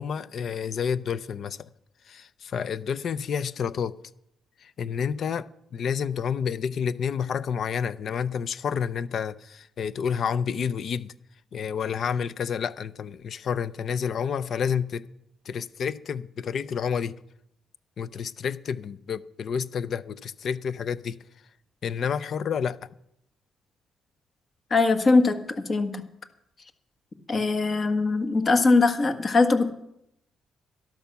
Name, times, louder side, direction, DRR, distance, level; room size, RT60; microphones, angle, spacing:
voice 1, 0.0-1.7 2.1-4.0 4.6-11.1 11.5-15.1 15.5-17.1 18.0-21.2 21.8-22.9, left 7 dB, 60° left, 0.6 m, -29 dB
voice 2, 24.7-26.0 27.3-29.7, left 3 dB, 40° left, 1.6 m, -21 dB
12.5 x 12.0 x 5.9 m
cardioid pair, 90°, 0 cm